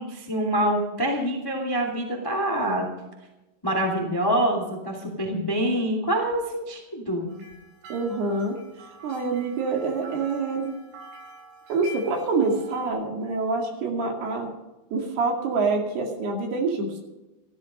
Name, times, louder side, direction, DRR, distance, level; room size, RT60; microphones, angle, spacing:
voice 1, 0.0-2.9 3.6-7.3, right 1 dB, 10° left, 2 dB, 1.3 m, -26 dB
sound 1, 7.3-12.9, right 1 dB, 85° right, 6.1 m, -46 dB
voice 2, 7.9-8.6 9.0-10.7 11.7-14.5 14.9-17.0, right 4 dB, 60° right, 2 dB, 4.1 m, -26 dB
14.5 x 14.0 x 5.4 m, 1.0 s
omnidirectional pair, 5.4 m